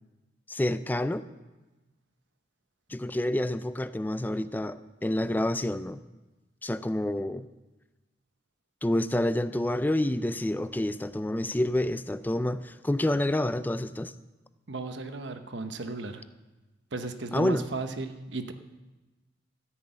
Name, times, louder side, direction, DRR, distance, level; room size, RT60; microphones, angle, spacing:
voice 1, 0.5-1.2 2.9-6.0 6.6-7.5 8.8-14.1 17.3-17.6, left 1 dB, 10° left, 13 dB, 0.3 m, -28 dB
voice 2, 14.7-16.2 16.9-18.5, right 3 dB, 70° right, 8 dB, 0.9 m, -35 dB
14.0 x 6.1 x 8.7 m, 1.1 s
head